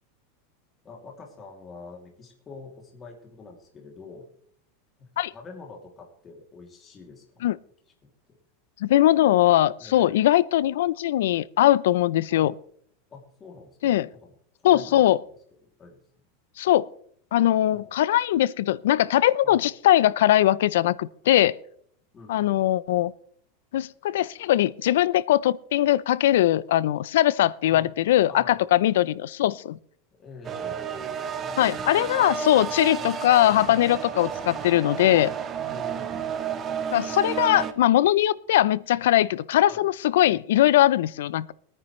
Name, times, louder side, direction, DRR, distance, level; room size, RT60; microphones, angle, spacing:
voice 1, 0.8-4.3 5.0-7.5 8.0-8.4 9.8-10.2 12.3-12.5 13.1-14.3 14.6-15.3 15.8-16.0 17.7-17.9 19.4-19.6 22.1-22.7 27.7-28.0 28.3-28.6 30.1-31.6 33.0-33.2 35.7-36.3 39.7-39.9, left 4 dB, 20° left, 2.7 m, -46 dB
voice 2, 8.8-12.5 13.8-14.1 14.6-15.2 16.6-16.9 17.3-21.6 22.3-23.1 23.7-29.8 31.6-35.3 36.9-41.5, left 13 dB, 80° left, 0.5 m, -21 dB
sound 1, 30.4-37.7, right 7 dB, 25° right, 1.0 m, -32 dB
22.5 x 9.8 x 3.2 m
supercardioid pair, 145°, 0 cm